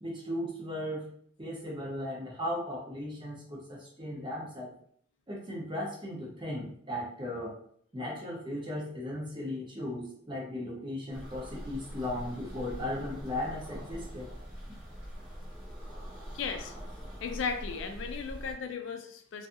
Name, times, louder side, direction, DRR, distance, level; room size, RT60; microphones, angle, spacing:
voice 1, 0.0-1.0 1.4-4.7 5.3-7.5 7.9-14.3, left 1 dB, 25° right, -4 dB, 0.7 m, -36 dB
sound 1, 11.1-18.6, equal, 5° right, 1.0 m, -43 dB
voice 2, 16.3-16.7 17.2-19.5, left 5 dB, 60° left, 6 dB, 0.3 m, -36 dB
2.6 x 2.3 x 2.5 m, 0.62 s
head